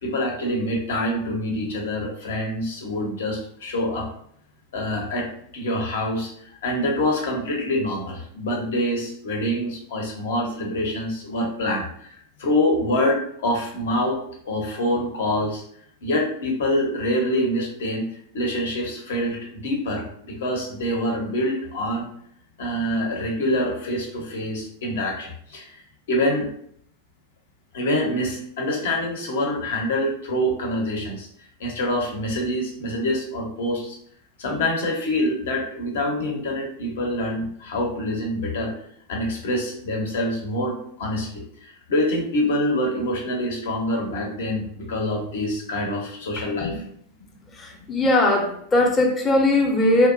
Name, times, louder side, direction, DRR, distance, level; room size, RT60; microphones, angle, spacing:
voice 1, 0.0-4.1 4.7-5.3 5.5-6.3 6.6-11.9 12.1-14.2 14.4-15.6 16.0-18.1 18.3-22.1 22.6-25.8 26.1-26.5 27.7-31.3 31.6-34.0 34.4-38.7 39.1-46.8, left 1 dB, 60° left, 0 dB, 0.7 m, -25 dB
voice 2, 47.6-50.1, left 1 dB, 20° left, 0 dB, 0.6 m, -19 dB
2.7 x 2.1 x 2.5 m, 0.65 s
figure-of-eight pair, 90°, 0 cm